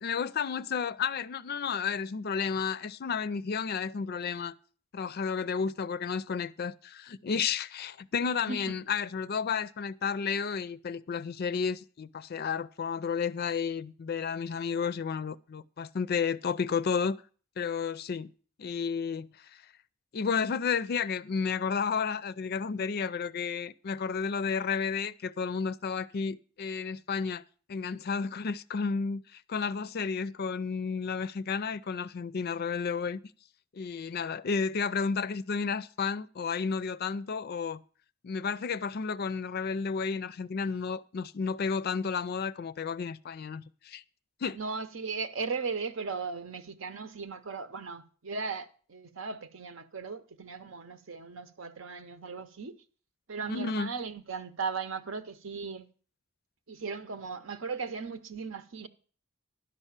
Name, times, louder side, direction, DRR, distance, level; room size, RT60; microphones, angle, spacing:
voice 1, 0.0-4.5 4.9-17.2 17.6-18.3 18.6-19.3 20.1-27.4 27.7-33.2 33.7-37.8 38.2-44.0 44.4-44.6 53.5-53.9, left 6 dB, 50° left, 0.4 m, -32 dB
voice 2, 8.4-8.8 44.5-52.8 53.3-55.9 56.7-58.9, right 5 dB, 70° right, 0.8 m, -37 dB
11.5 x 5.5 x 7.3 m
head